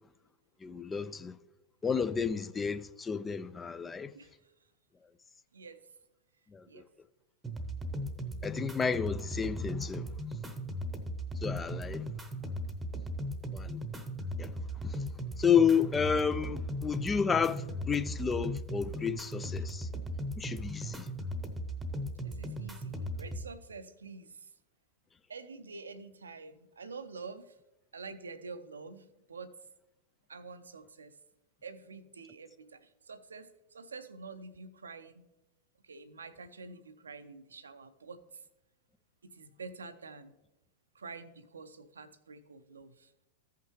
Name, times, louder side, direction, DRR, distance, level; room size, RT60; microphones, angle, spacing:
voice 1, 0.6-1.3 1.8-4.1 6.5-6.6 8.4-10.1 11.4-12.0 13.5-13.8 14.4-14.5 14.8-14.9 15.4-19.9 20.4-21.1, left 6 dB, 15° left, 0.4 m, -31 dB
voice 2, 4.1-4.5 5.5-5.8 6.7-6.9 22.2-24.5 25.3-27.6 27.9-29.5 30.3-31.2 31.6-35.2 35.8-38.4 39.2-40.3 40.9-43.1, right 4 dB, 70° right, 0.6 m, -47 dB
sound 1, 7.4-23.4, equal, 10° right, 0.9 m, -38 dB
14.5 x 5.8 x 3.2 m
figure-of-eight pair, 90°, 0 cm